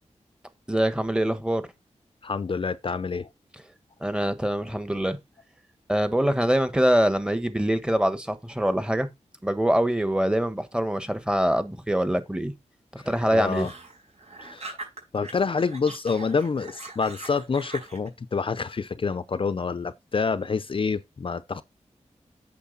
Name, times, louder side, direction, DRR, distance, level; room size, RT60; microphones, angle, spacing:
voice 1, 0.7-1.6 4.0-5.2 5.9-9.1 9.4-12.5 12.9-13.7, right 1 dB, 5° right, 1.3 m, -24 dB
voice 2, 2.2-3.3 13.0-13.7 14.4-14.8 15.1-21.6, left 5 dB, 45° left, 0.6 m, -27 dB
sound 1, 13.0-15.3 15.6-18.1, right 3 dB, 65° right, 4.8 m, -42 dB
8.5 x 6.8 x 4.0 m
wide cardioid pair, 90°, 12 cm